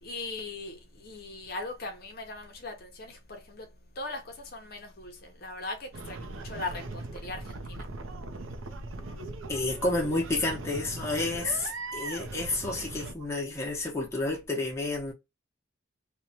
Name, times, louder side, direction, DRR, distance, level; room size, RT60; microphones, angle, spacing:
voice 1, 0.0-3.7 4.0-7.9, left 2 dB, 50° left, 0.6 m, -39 dB
sound 1, 5.9-13.1, right 2 dB, 85° right, 0.5 m, -39 dB
voice 2, 9.5-15.1, left 2 dB, 15° left, 0.7 m, -30 dB
2.9 x 2.1 x 2.6 m
head